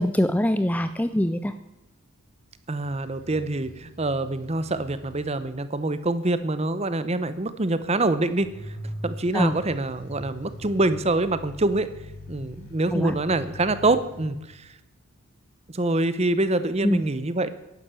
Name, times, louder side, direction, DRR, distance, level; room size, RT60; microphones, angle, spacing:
voice 1, 0.0-1.5 9.3-9.5 12.9-13.1 16.8-17.0, left 1 dB, 5° left, 11 dB, 0.4 m, -23 dB
voice 2, 2.7-8.8 9.0-11.9 12.3-14.7 15.7-17.5, right 2 dB, 30° right, 13 dB, 0.7 m, -25 dB
sound 1, 2.8-5.5 8.1-14.3, equal, 60° left, 4.0 m, -41 dB
11.0 x 10.5 x 7.6 m, 0.94 s
head